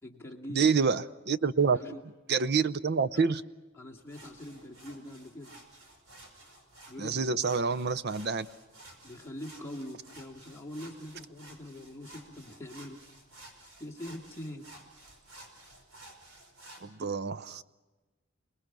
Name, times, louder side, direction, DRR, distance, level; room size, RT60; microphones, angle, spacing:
voice 1, 0.0-0.7 1.6-2.0 3.1-3.2 3.7-5.5 6.9-7.7 9.0-13.0 13.6-14.7 17.0-17.2, left 1 dB, 10° left, -1 dB, 2.6 m, -44 dB
voice 2, 0.5-1.8 2.3-3.4 7.0-8.5 16.8-17.6, right 5 dB, 50° right, 14 dB, 0.7 m, -27 dB
sound 1, 4.0-16.8, right 1 dB, 75° right, 5.2 m, -53 dB
28.0 x 20.5 x 6.1 m, 1.2 s
head